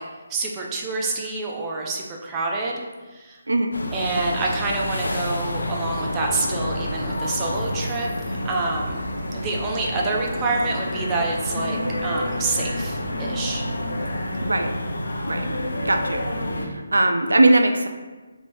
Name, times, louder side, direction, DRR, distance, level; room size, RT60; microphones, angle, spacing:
voice 1, 0.3-2.8 3.1-3.4 3.9-9.0 9.3-13.6, right 3 dB, 15° right, -2 dB, 0.5 m, -27 dB
sound 1, 3.7-16.7, left 1 dB, 65° left, 0.6 m, -28 dB
voice 2, 15.8-16.2 16.9-17.9, right 2 dB, 70° right, 6 dB, 0.4 m, -19 dB
5.3 x 3.0 x 2.6 m, 1.3 s
figure-of-eight pair, 145°, 0 cm